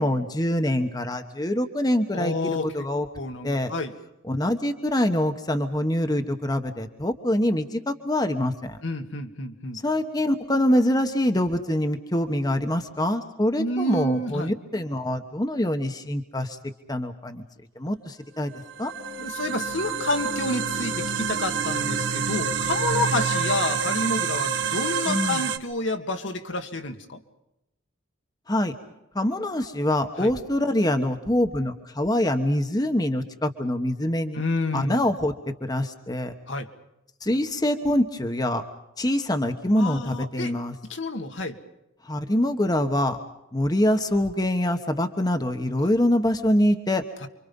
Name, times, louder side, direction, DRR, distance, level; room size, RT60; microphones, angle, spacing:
voice 1, 0.0-2.3 2.7-3.1 3.4-3.7 4.3-8.8 9.8-16.6 16.9-17.4 17.8-18.9 25.1-25.4 28.5-28.7 29.1-34.4 34.7-35.3 35.6-36.3 37.2-38.6 39.0-40.7 42.0-43.2 43.5-47.0, left 1 dB, 20° left, 6 dB, 1.2 m, -24 dB
voice 2, 2.1-2.9 3.2-3.9 8.8-9.8 13.6-14.5 19.2-27.2 30.2-30.3 34.3-35.1 36.5-36.7 39.8-40.5 40.9-41.6 45.8-45.9 47.2-47.3, left 2 dB, 65° left, 5 dB, 1.8 m, -29 dB
sound 1, 18.6-25.6, right 6 dB, 60° right, 1.4 m, -27 dB
29.0 x 25.0 x 5.4 m, 0.87 s
head